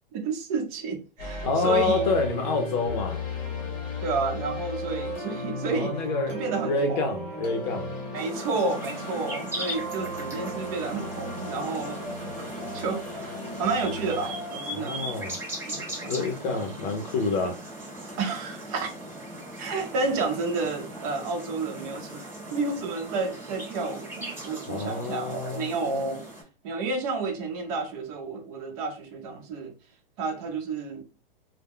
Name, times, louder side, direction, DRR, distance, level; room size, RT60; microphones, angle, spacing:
voice 1, 0.1-2.1 4.0-6.0 6.3-7.0 8.1-12.0 12.7-15.1 15.7-16.2 16.4-16.7 18.2-18.9 19.6-26.2 26.6-29.7 30.2-31.0, right 4 dB, 40° right, 0.8 m, -31 dB
sound 1, 1.2-16.0, left 1 dB, 25° left, 1.2 m, -35 dB
voice 2, 1.4-3.2 5.7-7.9 14.7-15.3 16.0-17.6 24.6-25.7, left 4 dB, 50° left, 0.6 m, -27 dB
sound 2, 8.1-26.4, right 1 dB, 10° right, 1.0 m, -39 dB
2.2 x 2.1 x 3.5 m
hypercardioid pair, 150°, 29 cm